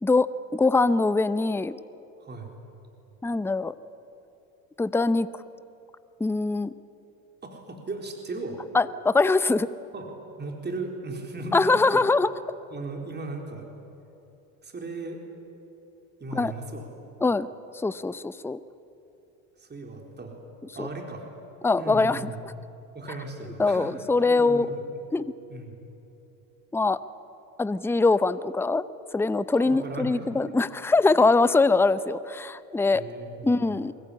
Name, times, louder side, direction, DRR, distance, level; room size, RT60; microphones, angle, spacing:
voice 1, 0.0-1.8 3.2-3.7 4.8-5.3 6.2-6.7 8.7-9.7 11.5-12.3 16.3-16.5 17.2-17.5 17.8-18.6 20.8-20.9 21.6-22.2 23.6-24.7 25.1-25.3 26.7-27.0 27.6-28.8 29.1-33.0 33.4-33.9, left 3 dB, 5° left, 15 dB, 0.7 m, -22 dB
voice 2, 2.2-2.5 7.4-8.6 9.9-12.0 12.7-13.7 14.6-15.2 16.2-16.9 19.6-20.4 20.7-21.2 21.8-22.4 22.9-23.9 24.2-24.7 25.5-25.8 29.5-30.6 32.9-33.8, right 2 dB, 25° right, 2 dB, 4.2 m, -37 dB
23.5 x 21.0 x 9.9 m, 2.9 s
hypercardioid pair, 80°, 42 cm